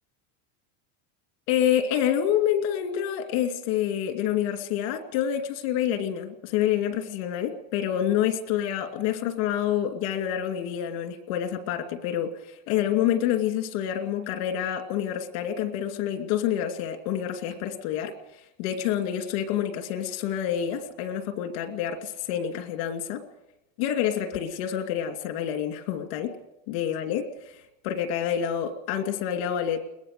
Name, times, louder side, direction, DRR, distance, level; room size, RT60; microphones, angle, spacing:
voice 1, 1.5-23.2 23.8-26.3 26.7-29.8, left 10 dB, 80° left, 7 dB, 2.6 m, -28 dB
21.5 x 18.0 x 6.7 m, 0.94 s
cardioid pair, 155°, 38 cm